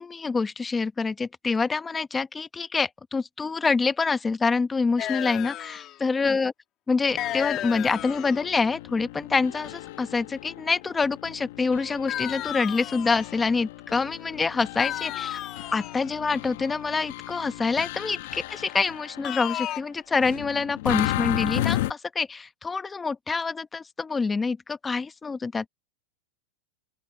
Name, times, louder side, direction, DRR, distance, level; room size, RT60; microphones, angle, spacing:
voice 1, 0.0-6.5 6.9-15.4 15.7-25.7, left 4 dB, 10° left, 1.1 m, -26 dB
sound 1, 5.0-6.0 7.2-8.5 12.1-13.4 14.8-16.1 19.2-19.8, left 13 dB, 35° left, 2.3 m, -33 dB
sound 2, 7.1-19.5 20.1-21.9, left 16 dB, 65° left, 1.7 m, -35 dB
open air
supercardioid pair, 150°, 0 cm